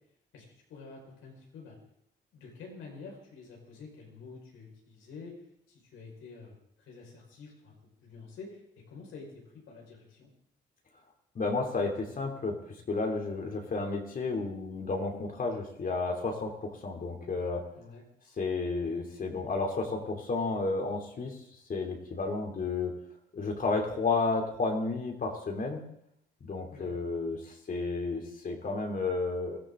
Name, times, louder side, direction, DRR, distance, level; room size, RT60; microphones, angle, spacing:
voice 1, 0.3-1.8 2.3-5.4 5.7-6.5 6.8-7.7 8.0-8.6 8.9-10.3 17.8-18.0 26.7-26.9, left 4 dB, 85° left, -1 dB, 5.2 m, -48 dB
voice 2, 11.3-12.6 12.9-17.6 18.4-21.4 21.7-22.9 23.3-25.8 26.5-29.6, left 3 dB, 45° left, 2 dB, 2.9 m, -32 dB
21.5 x 14.0 x 3.8 m, 0.74 s
cardioid pair, 90°, 20 cm